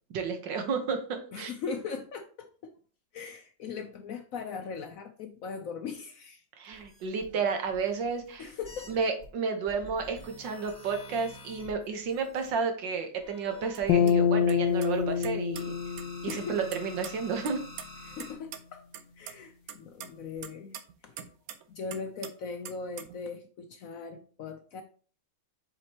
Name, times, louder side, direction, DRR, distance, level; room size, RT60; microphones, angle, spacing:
voice 1, 0.1-1.5 6.6-8.5 8.9-15.7 16.2-17.6, right 5 dB, 85° right, 5 dB, 1.8 m, -32 dB
voice 2, 1.3-2.7 3.1-6.4 8.4-8.9 16.3-16.6 18.0-18.8 19.2-21.3 21.7-24.8, left 5 dB, 65° left, 7 dB, 0.8 m, -39 dB
sound 1, 6.7-9.3 9.7-12.5 13.2-15.3 15.5-18.3, left 2 dB, 5° left, 2.4 m, -49 dB
sound 2, 13.7-13.8 14.1-14.2 14.5-14.6 14.8-15.6 16.0-16.4 16.7-18.3 18.5-18.6 18.9-19.3 19.7-21.6 21.9-22.3 22.7-23.2, right 9 dB, 65° right, 1.0 m, -42 dB
sound 3, 13.9-17.2, left 8 dB, 90° left, 1.3 m, -27 dB
7.5 x 5.0 x 2.9 m, 0.41 s
omnidirectional pair, 1.9 m